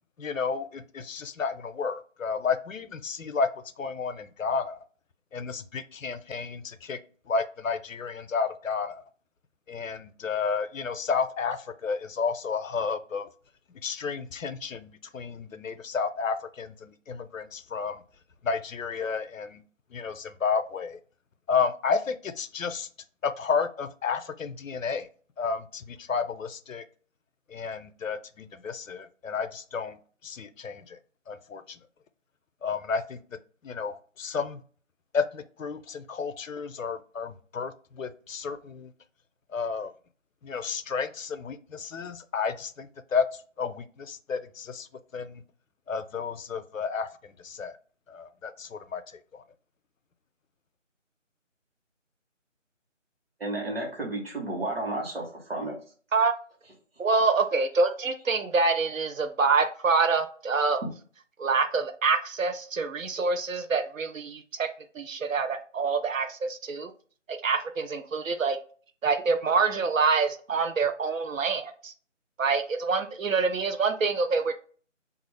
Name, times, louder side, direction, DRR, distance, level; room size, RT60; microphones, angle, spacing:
voice 1, 0.2-3.5 3.8-4.8 5.3-7.0 7.3-9.0 9.7-13.3 13.8-18.0 18.4-19.6 19.9-21.0 21.5-22.9 23.2-25.1 25.4-26.8 27.5-30.0 30.2-31.0 31.3-31.8 32.6-33.2 33.6-34.6 35.1-38.9 39.5-39.9 40.4-43.2 43.6-44.9 45.1-45.4 45.9-47.1 47.4-47.8 48.1-49.0 49.3-49.4, left 5 dB, 90° left, 11 dB, 0.5 m, -31 dB
voice 2, 53.4-55.8, right 2 dB, 50° right, -1 dB, 1.1 m, -32 dB
voice 3, 57.0-60.8 61.4-64.7 65.0-66.9 67.3-68.6 69.0-71.9 72.4-74.5, right 4 dB, 85° right, 8 dB, 0.6 m, -26 dB
2.7 x 2.4 x 3.1 m, 0.42 s
figure-of-eight pair, 160°, 38 cm